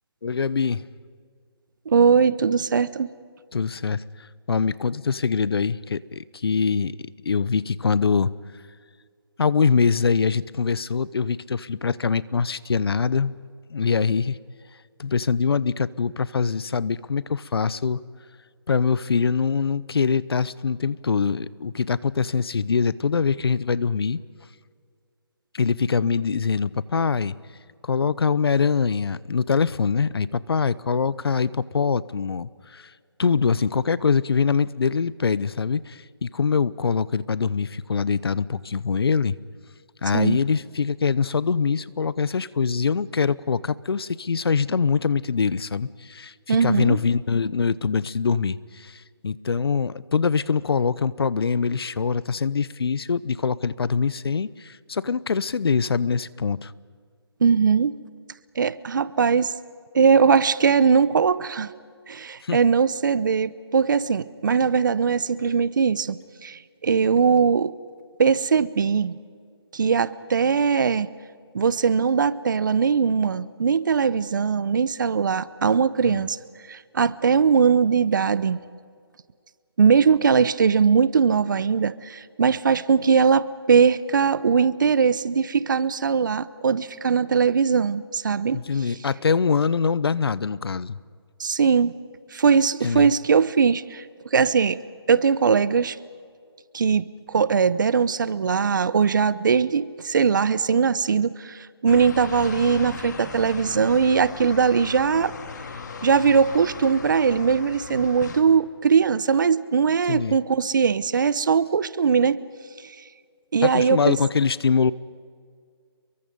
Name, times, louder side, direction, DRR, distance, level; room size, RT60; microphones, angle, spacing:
voice 1, 0.2-0.8 3.5-6.9 7.2-8.3 9.4-13.3 13.7-14.4 15.0-18.0 18.7-24.2 25.5-27.3 27.8-32.9 33.2-39.3 40.0-56.7 62.4-62.6 76.0-76.2 88.5-91.0 92.8-93.1 110.1-110.4 113.6-114.9, left 5 dB, 65° left, 20 dB, 0.8 m, -23 dB
voice 2, 1.9-3.1 40.1-40.4 46.5-47.0 57.4-57.9 58.6-59.5 59.9-61.7 62.1-67.7 68.2-69.1 69.7-71.1 71.5-76.4 76.7-78.6 79.8-88.6 91.4-92.0 92.3-94.0 94.3-94.8 95.1-96.0 96.7-105.3 106.0-112.4 113.5-114.2, right 6 dB, 50° right, 18 dB, 0.8 m, -20 dB
sound 1, 101.9-108.4, left 5 dB, 45° left, 2.1 m, -37 dB
29.0 x 23.0 x 5.3 m, 2.1 s
hypercardioid pair, 165°, 14 cm